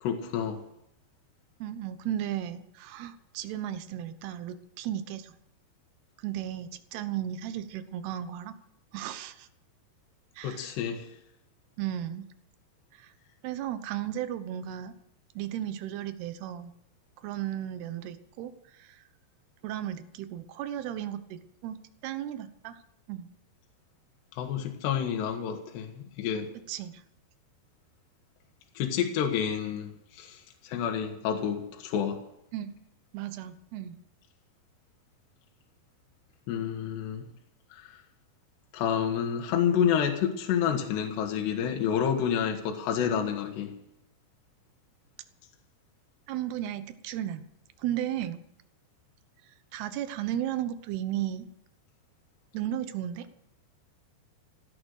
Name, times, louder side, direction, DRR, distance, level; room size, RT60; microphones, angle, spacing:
voice 1, 0.0-0.6 10.4-11.1 24.4-26.5 28.8-32.2 36.5-37.2 37.7-38.0 38.7-43.7, left 8 dB, 75° left, 3 dB, 3.5 m, -29 dB
voice 2, 1.6-5.4 6.2-8.6 8.9-9.5 10.4-10.7 11.8-12.2 13.0-13.1 13.4-14.9 15.4-16.7 17.2-19.0 19.6-21.8 22.0-22.8 23.1-23.3 26.7-27.0 32.5-32.7 33.1-34.0 46.3-47.4 47.8-48.4 49.7-51.5 52.5-53.3, right 11 dB, 75° right, 11 dB, 2.9 m, -35 dB
16.5 x 11.0 x 6.5 m, 0.78 s
omnidirectional pair, 5.1 m